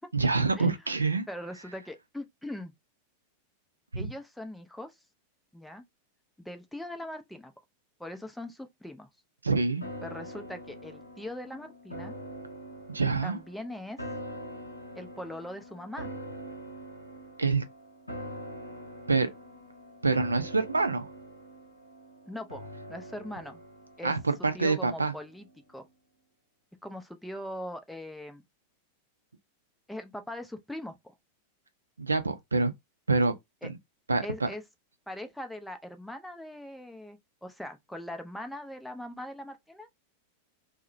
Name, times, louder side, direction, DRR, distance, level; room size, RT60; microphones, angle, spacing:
voice 1, 0.1-1.3 3.9-4.1 9.4-9.8 12.9-13.4 17.4-17.6 19.1-19.3 20.0-21.1 24.0-25.1 32.0-32.7 33.1-33.3 33.6-33.8 34.1-34.5, right 3 dB, 80° right, 0.4 m, -26 dB
voice 2, 1.3-2.7 3.9-5.0 5.5-5.8 6.4-7.5 8.0-9.1 10.0-12.2 13.2-14.0 15.0-16.1 22.3-23.6 24.0-24.1 24.5-25.9 26.8-28.4 29.9-31.1 33.6-33.7 34.2-34.6 35.1-39.9, left 1 dB, 5° left, 0.4 m, -41 dB
sound 1, 9.8-25.1 25.5-25.6, equal, 85° left, 0.7 m, -44 dB
2.7 x 2.1 x 2.4 m
figure-of-eight pair, 90°, 0 cm